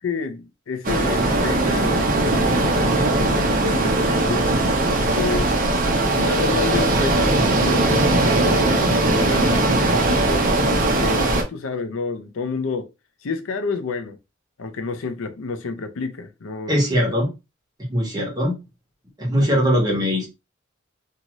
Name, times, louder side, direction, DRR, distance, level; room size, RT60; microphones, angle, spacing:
voice 1, 0.0-4.5 5.1-5.8 6.1-10.5 10.8-12.9 13.2-14.2 14.6-17.1 19.3-19.7, left 4 dB, 80° left, 0.5 m, -30 dB
sound 1, 0.8-11.4, right 2 dB, 45° right, 0.7 m, -19 dB
voice 2, 16.7-17.3 17.9-18.6 19.2-20.3, equal, 20° right, 1.1 m, -20 dB
2.7 x 2.5 x 2.9 m
head